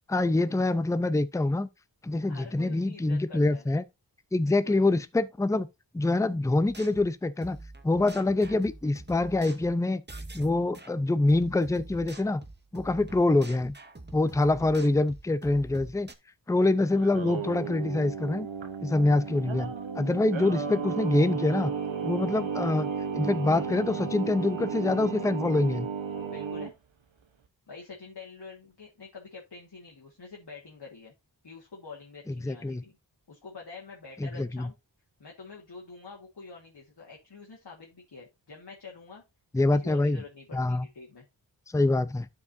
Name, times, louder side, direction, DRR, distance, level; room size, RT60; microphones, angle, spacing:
voice 1, 0.1-1.7 2.0-3.8 4.3-5.7 5.9-7.6 7.8-10.0 10.3-12.4 12.7-13.7 14.1-16.1 16.5-18.5 18.8-21.7 22.0-22.9 23.1-25.9 32.3-32.8 34.2-34.7 39.5-40.2 40.5-40.9 41.7-42.3, left 2 dB, 5° left, 0.5 m, -25 dB
voice 2, 2.3-3.6 4.4-4.8 26.3-26.8 27.7-31.1 31.4-33.0 33.3-34.7 35.2-39.2 39.5-41.3, left 4 dB, 60° left, 1.7 m, -46 dB
sound 1, 6.7-10.9 11.3-16.1, right 2 dB, 25° right, 1.0 m, -46 dB
Singing, 16.9-26.7, right 6 dB, 80° right, 1.0 m, -34 dB
12.5 x 4.8 x 2.6 m
wide cardioid pair, 65°, 45 cm